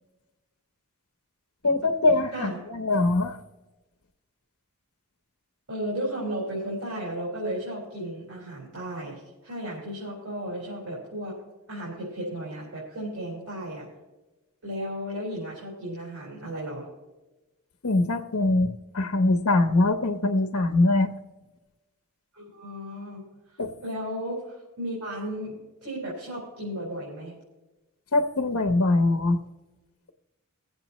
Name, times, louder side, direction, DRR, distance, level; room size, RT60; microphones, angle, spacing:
voice 1, 1.6-3.4 17.8-21.1 23.6-23.7 28.1-29.4, left 2 dB, 80° left, 3 dB, 0.9 m, -23 dB
voice 2, 5.7-11.3 11.7-13.9 14.6-16.9 22.3-23.2 23.5-27.3, equal, 80° right, -6 dB, 4.1 m, -34 dB
20.5 x 8.0 x 3.0 m, 1.1 s
head